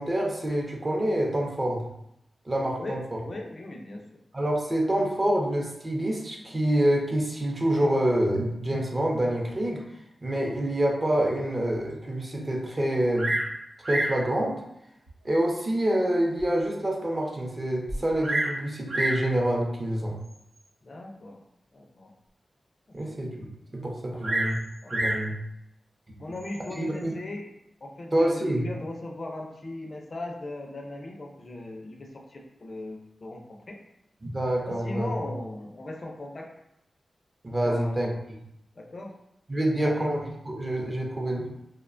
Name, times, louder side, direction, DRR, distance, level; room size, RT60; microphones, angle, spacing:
voice 1, 0.0-1.8 2.5-3.0 4.3-9.8 10.2-13.3 13.9-14.6 15.2-20.2 22.9-23.5 23.7-24.6 24.9-25.4 26.7-27.1 28.1-28.7 34.2-35.1 37.4-38.1 39.5-41.5, right 1 dB, 30° right, -1 dB, 0.5 m, -26 dB
voice 2, 2.7-4.0 20.8-21.4 21.7-22.1 23.1-23.2 24.1-24.4 24.8-25.1 26.2-27.4 27.8-33.8 34.7-36.5 37.6-38.0 38.8-39.1 39.8-40.1, left 2 dB, 45° left, 1 dB, 0.4 m, -38 dB
Bird vocalization bird call bird song, 13.1-13.5 13.8-14.2 15.1-15.2 15.8-15.9 16.4-16.5 16.7-16.8 17.9-18.6 18.9-19.3 20.2-20.6 24.2-25.3 26.3-26.8, right 1 dB, 90° right, 0.7 m, -28 dB
2.8 x 2.1 x 2.4 m, 0.79 s
wide cardioid pair, 95°, 0 cm